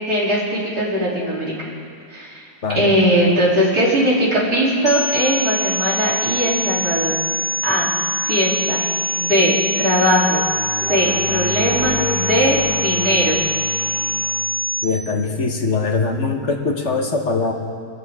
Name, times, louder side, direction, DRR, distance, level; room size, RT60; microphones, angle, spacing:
voice 1, 0.1-1.5 2.1-2.4 2.8-7.1 7.6-7.9 8.2-8.8 9.2-10.4 10.9-13.4, equal, 70° right, -6 dB, 3.9 m, -19 dB
sound 1, 4.9-14.9, equal, 85° left, 1.7 m, -24 dB
sound 2, 5.4-14.4, left 2 dB, 35° right, 3.5 m, -33 dB
voice 2, 14.8-17.5, left 4 dB, 45° left, 3 dB, 1.5 m, -22 dB
26.0 x 14.0 x 3.7 m, 2.3 s
omnidirectional pair, 1.7 m